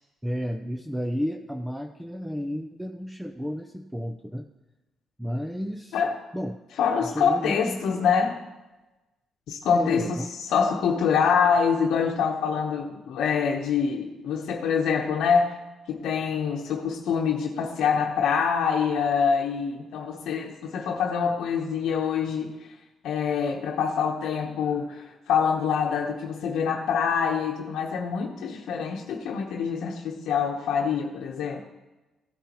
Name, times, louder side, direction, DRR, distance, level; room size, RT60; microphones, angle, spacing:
voice 1, 0.2-4.5 5.2-6.0 6.3-6.6 7.0-8.0 9.7-10.3, equal, 5° right, 6 dB, 0.6 m, -32 dB
voice 2, 6.8-8.3 9.5-10.2 10.5-15.5 15.9-22.6 23.0-31.6, left 6 dB, 80° left, 0 dB, 0.9 m, -25 dB
15.5 x 9.1 x 3.0 m, 1.1 s
cardioid pair, 90°, 0 cm